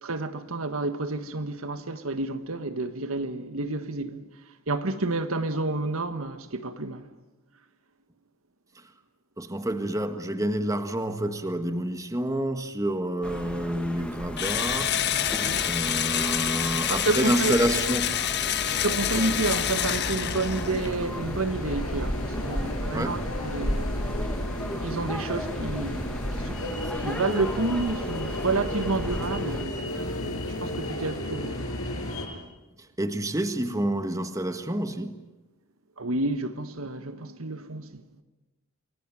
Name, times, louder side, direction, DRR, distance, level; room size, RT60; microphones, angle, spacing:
voice 1, 0.0-4.3 4.7-7.1 15.3-15.7 16.9-17.6 18.7-23.9 24.8-26.6 27.0-30.0 30.6-31.6 36.0-38.0, right 2 dB, 75° right, 1.6 m, -30 dB
voice 2, 9.4-15.3 15.6-18.1 22.9-23.2 33.0-35.2, right 1 dB, 15° right, 1.5 m, -28 dB
sound 1, 13.2-29.7, equal, 5° left, 1.8 m, -35 dB
Engine / Drill, 14.4-20.9, left 10 dB, 50° left, 1.3 m, -27 dB
sound 2, 18.3-32.3, left 1 dB, 80° left, 6.7 m, -34 dB
28.0 x 22.5 x 9.2 m
head